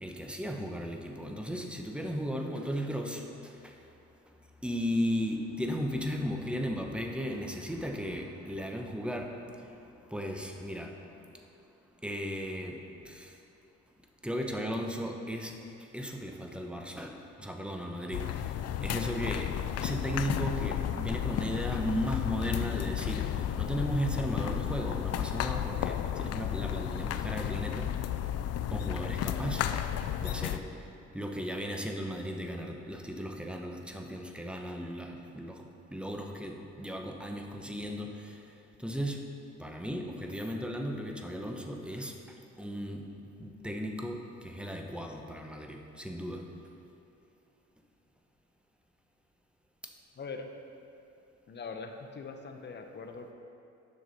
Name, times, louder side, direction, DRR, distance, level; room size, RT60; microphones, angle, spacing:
voice 1, 0.0-3.7 4.6-9.7 10.1-11.0 12.0-12.8 13.0-13.3 14.2-15.5 15.9-17.1 17.4-18.5 18.8-27.9 28.7-29.8 30.2-30.6 31.1-35.6 35.9-38.4 38.8-39.2 39.6-42.1 42.6-43.1 43.4-46.4, equal, 5° right, 2 dB, 0.8 m, -36 dB
sound 1, 18.1-30.6, left 10 dB, 55° left, 0.4 m, -33 dB
voice 2, 50.2-50.5 51.5-53.3, left 4 dB, 35° left, 4 dB, 0.8 m, -42 dB
9.3 x 6.1 x 4.1 m, 2.6 s
cardioid pair, 90°, 30 cm